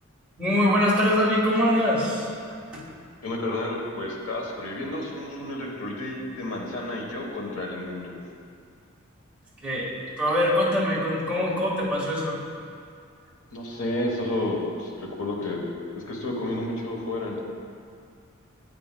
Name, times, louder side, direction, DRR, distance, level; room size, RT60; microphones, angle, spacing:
voice 1, 0.4-2.3 2.7-2.8 9.6-9.9 10.2-12.4, equal, 5° right, -7 dB, 1.5 m, -23 dB
voice 2, 3.2-8.1 13.5-17.4, left 1 dB, 85° left, -1 dB, 1.2 m, -31 dB
9.1 x 8.5 x 2.2 m, 2.3 s
head